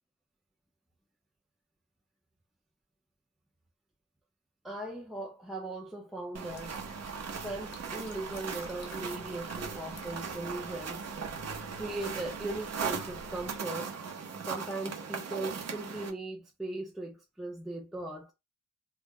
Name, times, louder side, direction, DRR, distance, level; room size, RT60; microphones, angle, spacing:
voice 1, 4.6-6.8 7.4-11.1 11.8-14.0 14.4-18.3, right 2 dB, ahead, 0.4 m, -39 dB
sound 1, 6.3-16.1, right 6 dB, 50° right, 0.7 m, -39 dB
sound 2, 6.4-13.6, left 2 dB, 55° left, 0.8 m, -50 dB
2.3 x 2.0 x 3.5 m
wide cardioid pair, 135°, 32 cm